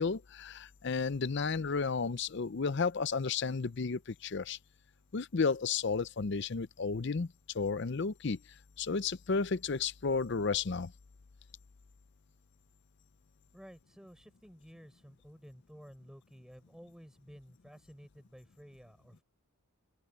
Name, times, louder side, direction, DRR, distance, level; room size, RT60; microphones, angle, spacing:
voice 1, 0.0-4.6 5.1-8.4 8.8-10.9, left 4 dB, 50° left, 0.6 m, -32 dB
voice 2, 13.5-19.2, equal, ahead, 6.8 m, -54 dB
open air
head